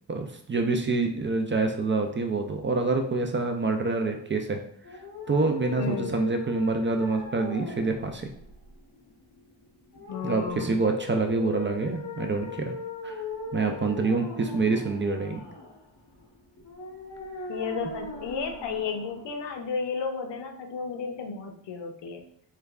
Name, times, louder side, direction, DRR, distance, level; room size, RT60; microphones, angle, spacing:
voice 1, 0.1-4.6 4.9-5.0 5.3-8.3 10.2-12.7 13.0-13.2 13.5-15.4, right 3 dB, 30° right, 4 dB, 0.4 m, -26 dB
sound 1, 4.8-19.8, left 3 dB, 50° left, 1.1 m, -40 dB
voice 2, 5.8-6.1 10.1-10.8 17.5-22.2, left 5 dB, 75° left, 5 dB, 0.7 m, -33 dB
3.4 x 3.3 x 2.4 m, 0.63 s
cardioid pair, 80°, 43 cm